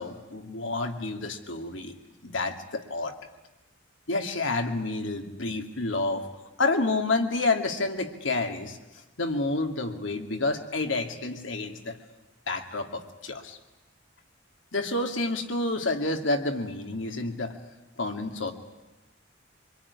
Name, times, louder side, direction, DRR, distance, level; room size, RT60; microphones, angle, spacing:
voice 1, 0.0-2.0 2.2-3.2 4.1-6.3 6.6-8.8 9.2-12.0 12.5-13.6 14.7-17.5 18.0-18.5, left 2 dB, 85° left, 5 dB, 2.5 m, -29 dB
25.0 x 22.5 x 9.8 m, 1.0 s
head